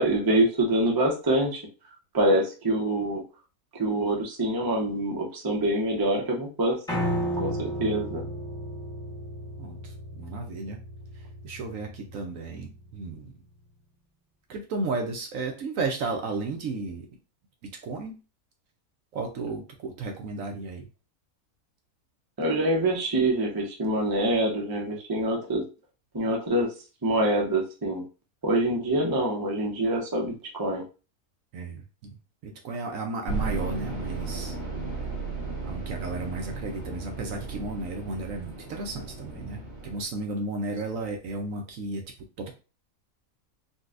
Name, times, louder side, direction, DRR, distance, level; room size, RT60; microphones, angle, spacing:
voice 1, 0.0-1.6 2.1-3.2 3.7-7.0 7.4-8.2 22.4-25.6 26.1-26.7 27.0-28.0 28.4-30.8, right 1 dB, 25° right, -1 dB, 0.4 m, -25 dB
Piano, 6.9-13.0, equal, 5° left, 0.9 m, -34 dB
voice 2, 9.6-10.8 11.2-13.3 14.5-17.1 17.8-18.2 19.1-20.9 31.5-32.2 32.4-34.6 35.6-42.0 42.4-42.5, right 3 dB, 70° right, 3 dB, 0.9 m, -34 dB
sound 1, 33.3-40.0, right 3 dB, 45° right, 1.2 m, -35 dB
4.0 x 2.2 x 2.4 m, 0.33 s
omnidirectional pair, 1.6 m